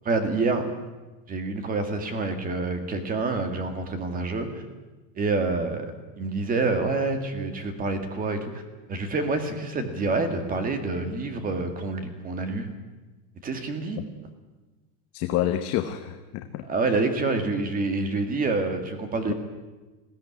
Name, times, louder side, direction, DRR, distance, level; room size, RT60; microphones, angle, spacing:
voice 1, 0.0-0.7 1.3-4.6 5.2-5.9 6.2-8.6 8.9-12.7 13.4-14.0 16.7-19.3, right 3 dB, 15° right, 7 dB, 2.1 m, -27 dB
voice 2, 15.1-16.6 19.3-19.4, left 12 dB, 30° left, 7 dB, 1.0 m, -28 dB
20.5 x 16.0 x 10.0 m, 1.2 s
supercardioid pair, 170°, 48 cm